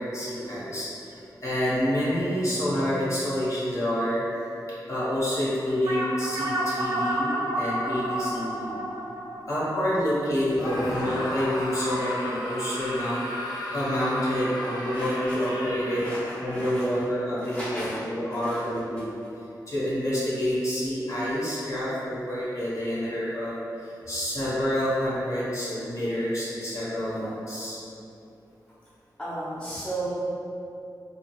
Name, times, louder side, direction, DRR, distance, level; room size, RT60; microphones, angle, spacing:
voice 1, 0.0-4.2 4.9-8.7 9.5-13.2 13.7-16.1 16.4-19.1 19.7-27.8, equal, 45° left, -9 dB, 0.8 m, -28 dB
sound 1, 5.9-10.7, right 1 dB, 65° right, 0.4 m, -30 dB
Screaming, 10.5-17.0, left 1 dB, 85° left, 0.5 m, -35 dB
voice 2, 10.6-11.2 14.6-15.5 15.9-16.9 17.4-18.0 18.3-18.8 29.2-30.1, right 1 dB, 15° left, -11 dB, 0.7 m, -36 dB
2.6 x 2.4 x 2.9 m, 2.8 s
wide cardioid pair, 95°, 7 cm